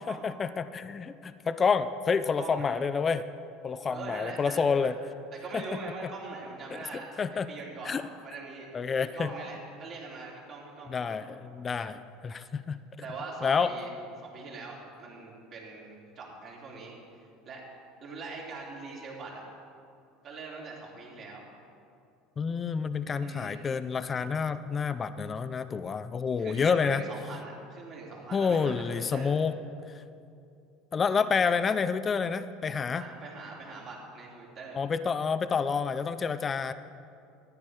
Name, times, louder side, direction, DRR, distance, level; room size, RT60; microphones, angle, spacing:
voice 1, 0.0-3.2 3.6-5.0 5.5-5.6 6.7-6.8 7.2-7.5 7.8-8.0 8.7-9.3 10.9-12.8 13.4-13.7 22.4-27.0 28.3-29.6 29.9-30.0 30.9-33.0 34.7-36.7, left 5 dB, 30° left, 12 dB, 0.5 m, -28 dB
voice 2, 2.4-2.8 3.9-4.9 5.3-7.1 7.5-8.7 9.1-11.2 13.0-13.9 14.2-17.6 18.0-19.4 20.2-21.5 23.2-23.6 26.4-29.4 32.9-34.8, right 3 dB, 50° right, -3 dB, 3.3 m, -42 dB
13.5 x 9.9 x 4.7 m, 2.6 s
hypercardioid pair, 75°, 0 cm